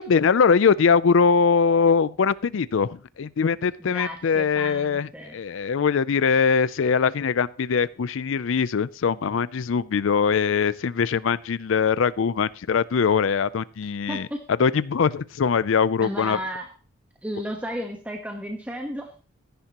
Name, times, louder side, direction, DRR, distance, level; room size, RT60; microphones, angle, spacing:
voice 1, 0.0-14.3 14.6-16.4, left 6 dB, 75° left, 18 dB, 0.4 m, -22 dB
voice 2, 3.9-5.4 14.1-14.5 16.0-16.7 17.2-19.2, equal, 5° right, 2 dB, 1.1 m, -33 dB
14.5 x 10.5 x 2.9 m, 0.36 s
head